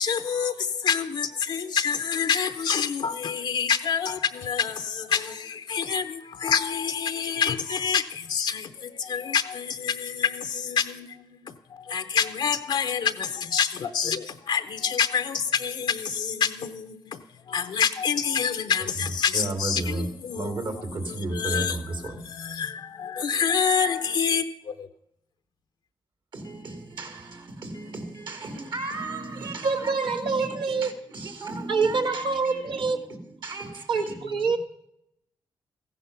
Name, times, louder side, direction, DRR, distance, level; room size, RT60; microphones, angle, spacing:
voice 1, 0.0-17.2 17.5-20.7 21.1-24.9, left 7 dB, 75° left, 0.7 m, -27 dB
voice 2, 19.3-22.2 26.3-34.4, right 2 dB, 65° right, 2.4 m, -34 dB
voice 3, 29.6-30.9 31.7-33.0 33.9-34.6, right 4 dB, 85° right, 1.4 m, -26 dB
15.0 x 10.5 x 5.8 m
cardioid pair, 75°, 8 cm